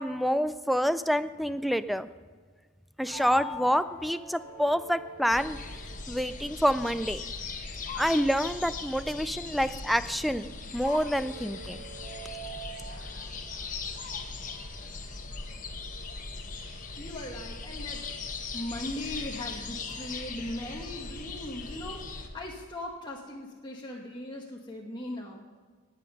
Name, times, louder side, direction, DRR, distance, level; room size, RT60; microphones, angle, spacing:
voice 1, 0.0-2.1 3.0-5.6 6.1-7.2 7.9-11.8, equal, ahead, 13 dB, 0.4 m, -27 dB
sound 1, 3.1-15.0, equal, 40° right, 2.2 m, -47 dB
sound 2, 5.3-22.3, left 4 dB, 40° left, 1.3 m, -39 dB
voice 2, 17.0-18.0 18.5-25.4, left 1 dB, 20° left, -2 dB, 1.2 m, -39 dB
19.0 x 7.8 x 5.4 m, 1.5 s
head